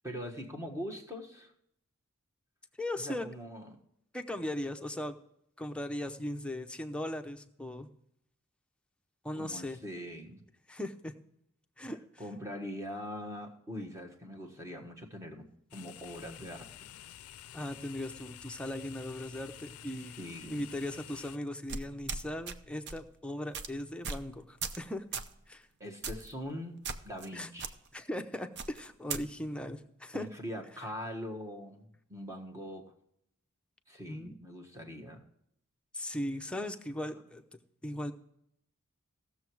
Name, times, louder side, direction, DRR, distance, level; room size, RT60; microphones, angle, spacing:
voice 1, 0.0-1.5 3.0-3.8 9.4-10.4 12.2-15.5 15.7-16.7 20.2-20.6 25.8-27.7 30.1-32.9 33.9-35.2, equal, 15° right, 2 dB, 1.4 m, -42 dB
voice 2, 2.8-3.3 4.1-5.2 5.6-7.9 9.2-9.8 10.7-11.2 11.8-12.0 17.5-20.2 20.5-25.0 25.5-25.7 27.3-27.5 27.9-30.3 34.1-34.3 35.9-37.4 37.8-38.1, left 1 dB, 5° left, 6 dB, 0.7 m, -38 dB
sound 1, 15.7-21.4, left 12 dB, 80° left, 0.4 m, -50 dB
sound 2, 21.7-22.6 22.9-23.1 23.5-23.7 24.0-24.3 24.6-24.8 25.1-25.3 26.0-26.3 26.8-27.3 27.6-27.7 28.6-29.2, right 5 dB, 50° right, 0.7 m, -38 dB
17.0 x 7.0 x 4.7 m, 0.75 s
head